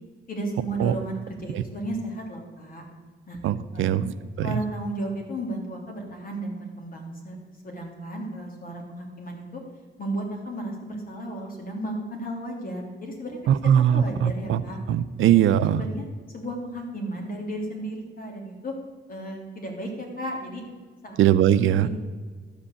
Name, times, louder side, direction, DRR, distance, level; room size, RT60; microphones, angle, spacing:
voice 1, 0.3-2.8 3.3-3.4 3.7-4.0 4.4-7.4 7.6-9.6 10.0-14.8 15.8-16.1 16.3-18.7 19.1-20.6 21.0-21.2 21.8-21.9, right 1 dB, 45° left, 1 dB, 2.8 m, -34 dB
voice 2, 3.4-4.0 4.4-4.5 13.6-14.6 14.9-15.8 21.2-21.9, right 10 dB, 85° right, 14 dB, 0.5 m, -20 dB
12.0 x 5.2 x 8.4 m, 1.5 s
cardioid pair, 90°, 20 cm